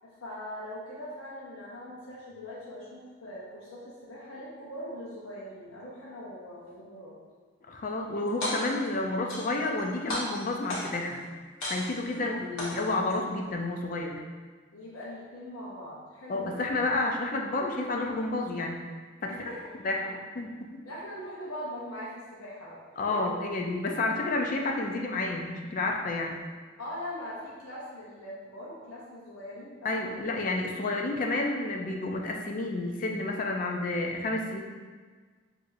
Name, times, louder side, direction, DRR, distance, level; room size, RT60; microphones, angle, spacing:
voice 1, 0.0-7.2 8.2-8.4 12.1-12.5 14.7-16.7 19.3-20.1 20.8-22.8 23.1-23.2 26.8-30.5, left 1 dB, 90° left, -7 dB, 0.8 m, -41 dB
voice 2, 7.7-11.2 11.6-14.2 16.3-18.8 19.2-19.3 19.8-20.0 20.4-20.7 23.0-26.4 29.8-34.6, left 2 dB, 40° left, 2 dB, 0.4 m, -30 dB
sound 1, 8.3-8.9 9.3-9.8 10.1-11.1 11.6-12.1 12.6-13.1, left 1 dB, 70° left, 1.1 m, -34 dB
5.6 x 2.6 x 2.6 m, 1.5 s
head